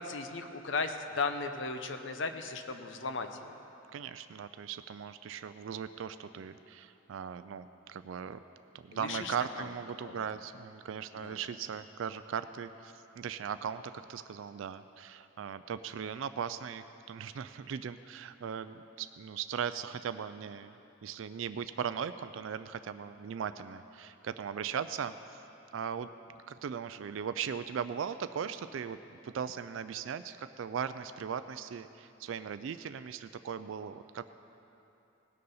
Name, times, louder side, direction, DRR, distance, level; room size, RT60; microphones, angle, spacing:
voice 1, 0.0-3.5 8.9-9.7 10.0-10.2 11.1-11.4, left 4 dB, 65° left, 7 dB, 0.7 m, -36 dB
voice 2, 3.9-8.4 8.8-25.2 25.7-26.1 26.5-29.0 29.2-34.3, right 7 dB, 70° right, 12 dB, 0.4 m, -38 dB
19.0 x 6.7 x 5.5 m, 2.9 s
head